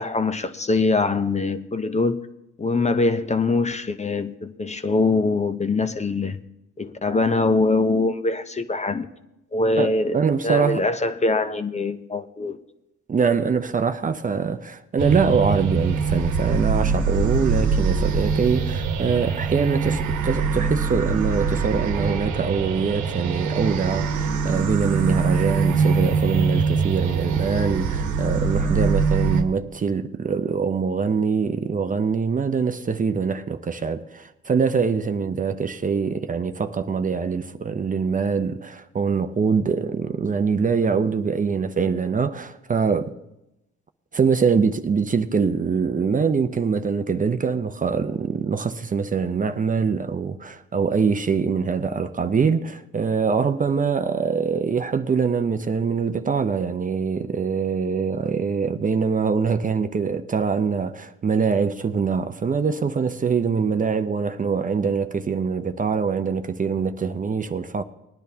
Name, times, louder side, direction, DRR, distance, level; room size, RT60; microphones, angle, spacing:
voice 1, 0.0-2.3 2.6-6.4 6.8-9.1 9.5-10.2 10.4-12.6, left 3 dB, 25° left, 0.7 m, -23 dB
voice 2, 9.8-10.8 13.1-43.2 44.1-67.8, right 5 dB, 30° right, 0.6 m, -24 dB
sound 1, 15.0-29.4, right 5 dB, 85° right, 1.2 m, -23 dB
20.0 x 10.0 x 2.8 m
cardioid pair, 85°, 29 cm